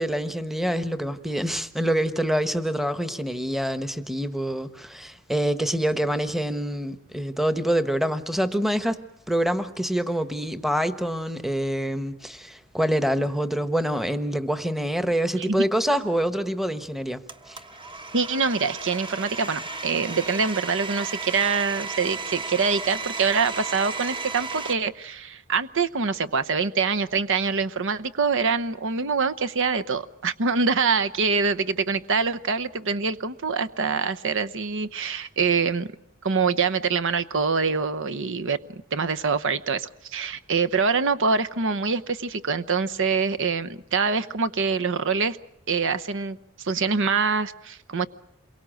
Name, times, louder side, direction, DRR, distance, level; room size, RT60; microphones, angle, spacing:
voice 1, 0.0-9.0 9.3-17.2 17.5-17.6, equal, ahead, 10 dB, 1.1 m, -26 dB
Domestic sounds home sounds, 17.3-24.7, right 4 dB, 25° right, 1.2 m, -34 dB
voice 2, 18.1-35.9 36.2-45.4 45.7-48.1, right 5 dB, 60° right, 11 dB, 0.9 m, -25 dB
28.5 x 23.0 x 6.5 m, 0.76 s
head